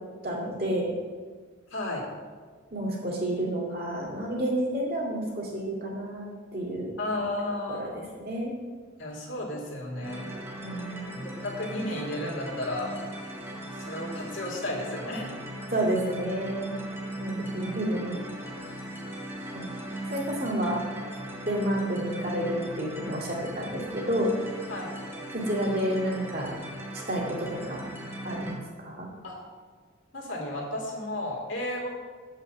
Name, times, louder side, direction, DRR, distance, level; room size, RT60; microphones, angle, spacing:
voice 1, 0.2-0.9 2.7-6.9 7.7-8.5 10.6-11.1 15.7-16.8 17.2-18.2 19.5-19.7 20.1-20.8 21.5-24.3 25.3-26.5 27.1-27.8 28.2-29.1, right 1 dB, 50° right, -3 dB, 2.3 m, -30 dB
voice 2, 1.7-2.0 7.0-8.0 9.0-10.3 11.2-12.9 13.8-15.3 17.4-17.9 24.7-24.9 29.2-29.4 30.1-31.9, left 1 dB, 80° left, -3 dB, 2.3 m, -33 dB
sound 1, 10.0-28.6, right 1 dB, 10° right, 1.1 m, -38 dB
7.3 x 5.7 x 7.1 m, 1.5 s
head